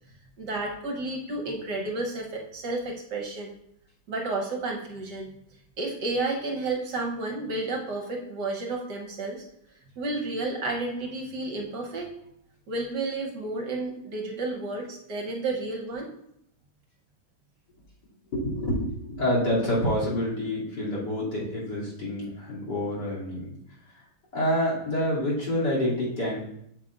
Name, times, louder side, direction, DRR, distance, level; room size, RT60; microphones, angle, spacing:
voice 1, 0.4-3.5 4.1-5.3 5.8-9.4 10.0-12.1 12.7-16.1, right 2 dB, 65° right, 1 dB, 1.5 m, -31 dB
voice 2, 18.3-23.5 24.3-26.4, left 1 dB, 60° left, -6 dB, 3.3 m, -27 dB
8.2 x 7.6 x 2.4 m, 0.74 s
omnidirectional pair, 2.1 m